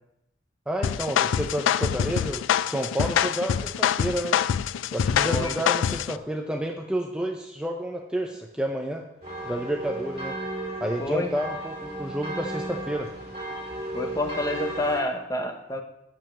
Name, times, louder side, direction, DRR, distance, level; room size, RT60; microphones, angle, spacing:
voice 1, 0.7-4.4 4.9-9.0 9.4-10.4 10.8-13.1, right 1 dB, 5° right, 1 dB, 0.5 m, -30 dB
sound 1, 0.8-6.1, left 9 dB, 85° left, 0.3 m, -25 dB
voice 2, 5.2-5.6 11.0-11.3 13.9-15.8, left 1 dB, 20° left, 4 dB, 0.9 m, -28 dB
sound 2, 9.2-15.0, right 1 dB, 30° right, 2.4 m, -35 dB
7.2 x 5.6 x 7.3 m, 0.87 s
head